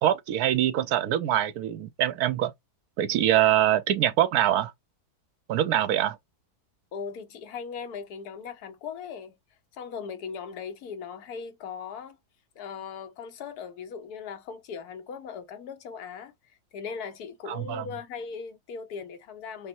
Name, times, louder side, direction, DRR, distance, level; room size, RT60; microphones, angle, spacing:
voice 1, 0.0-2.5 3.0-4.7 5.5-6.2 17.5-17.8, right 12 dB, 75° right, 1.1 m, -24 dB
voice 2, 6.9-9.4 9.7-12.2 12.6-16.3 16.7-19.7, left 6 dB, 70° left, 1.3 m, -38 dB
5.4 x 2.1 x 4.3 m
omnidirectional pair, 1.7 m